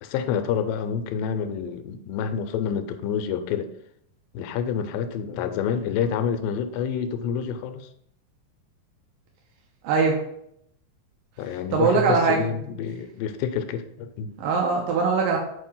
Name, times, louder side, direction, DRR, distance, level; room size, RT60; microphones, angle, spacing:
voice 1, 0.0-3.7 4.3-7.9 11.4-14.3, left 7 dB, 80° left, 8 dB, 2.3 m, -28 dB
voice 2, 9.8-10.2 11.7-12.4 14.4-15.4, right 5 dB, 80° right, 0 dB, 2.6 m, -21 dB
8.3 x 2.9 x 5.4 m, 0.73 s
omnidirectional pair, 4.1 m